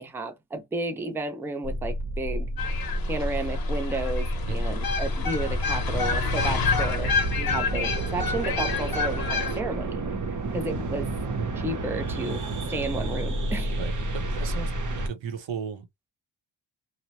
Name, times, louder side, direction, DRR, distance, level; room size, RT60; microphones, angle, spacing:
voice 1, 0.0-2.5 3.1-10.0 10.3-11.1 11.6-12.4 12.7-13.8, right 2 dB, 5° right, 0.3 m, -32 dB
sound 1, 1.6-15.1, right 1 dB, 40° right, 0.7 m, -30 dB
sound 2, 2.6-9.6, left 5 dB, 50° left, 0.7 m, -29 dB
voice 2, 13.8-16.1, right 7 dB, 80° right, 0.8 m, -37 dB
2.7 x 2.1 x 2.9 m
wide cardioid pair, 175°, 45 cm